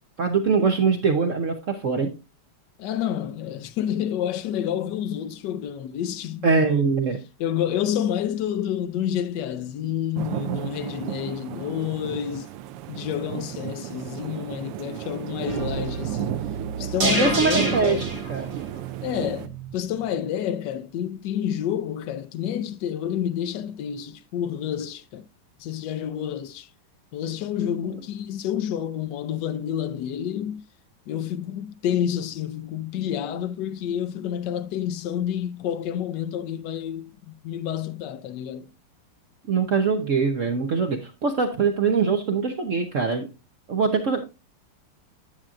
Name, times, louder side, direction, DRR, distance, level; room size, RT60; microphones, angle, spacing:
voice 1, 0.2-2.2 6.4-7.2 16.6-18.6 39.5-43.3 43.7-44.2, right 5 dB, 70° right, 0.7 m, -23 dB
voice 2, 2.8-7.0 7.4-12.5 12.9-16.5 16.8-18.2 19.0-25.2 25.6-26.7 27.1-30.6 31.1-38.7, left 10 dB, 80° left, 0.9 m, -29 dB
sound 1, 10.2-19.5, right 13 dB, 85° right, 1.5 m, -33 dB
sound 2, 15.5-19.7 20.0-20.1, right 3 dB, 40° right, 2.5 m, -30 dB
9.8 x 7.5 x 2.4 m
omnidirectional pair, 2.4 m